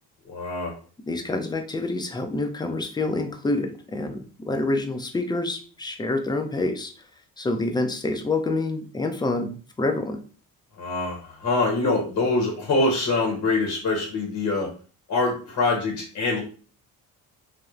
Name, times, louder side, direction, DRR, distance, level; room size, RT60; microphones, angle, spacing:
voice 1, 0.2-0.8 10.8-14.7 15.1-16.4, left 3 dB, 50° left, 0 dB, 0.8 m, -24 dB
voice 2, 1.1-4.2 4.4-6.9 7.4-10.2, left 2 dB, 10° left, 6 dB, 0.4 m, -27 dB
3.0 x 2.0 x 2.4 m, 0.39 s
supercardioid pair, 75°, 36 cm